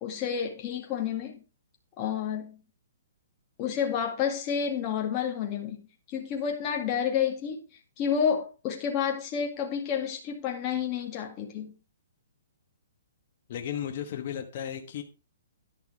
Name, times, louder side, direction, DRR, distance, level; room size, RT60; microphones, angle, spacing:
voice 1, 0.0-1.4 2.0-2.6 3.6-5.8 6.1-7.6 8.0-11.7, left 7 dB, 25° left, 2.0 m, -30 dB
voice 2, 13.5-15.0, left 9 dB, 45° left, 1.1 m, -34 dB
11.0 x 5.8 x 4.6 m
hypercardioid pair, 160°, 0 cm